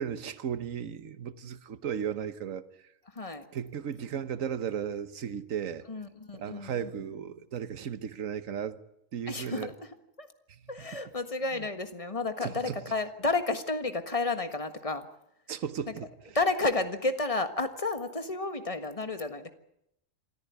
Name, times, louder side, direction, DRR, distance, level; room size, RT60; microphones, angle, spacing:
voice 1, 0.0-2.9 3.5-5.9 6.3-8.8 9.1-9.7 10.5-10.6 11.5-11.7 12.4-12.8 15.5-16.1, right 8 dB, 80° right, 1.4 m, -35 dB
voice 2, 3.1-3.4 5.9-6.9 9.3-10.3 10.7-15.1 16.3-19.5, left 3 dB, 25° left, 1.6 m, -31 dB
26.5 x 14.0 x 9.6 m
omnidirectional pair, 1.3 m